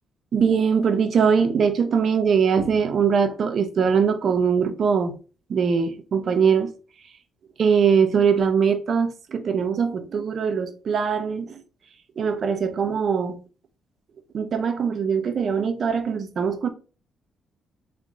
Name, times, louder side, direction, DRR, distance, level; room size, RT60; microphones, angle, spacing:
voice 1, 0.3-5.2 5.5-6.7 7.6-11.6 12.2-13.4 14.3-16.7, right 6 dB, 55° right, 0.7 m, -21 dB
3.7 x 3.3 x 4.1 m
cardioid pair, 90°, 0 cm